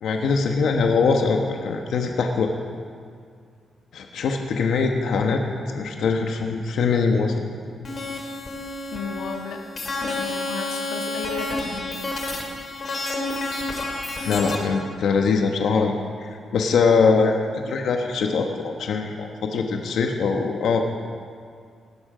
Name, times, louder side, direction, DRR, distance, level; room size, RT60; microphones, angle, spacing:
voice 1, 0.0-2.5 3.9-5.4 5.7-7.5 14.2-20.8, left 4 dB, 70° left, 3 dB, 1.3 m, -22 dB
sound 1, 7.8-14.5, left 2 dB, 35° left, 2.7 m, -30 dB
voice 2, 8.9-9.6 10.0-12.0, left 5 dB, 90° left, 3 dB, 1.4 m, -34 dB
19.0 x 12.0 x 5.1 m, 2.2 s
cardioid pair, 145°, 0 cm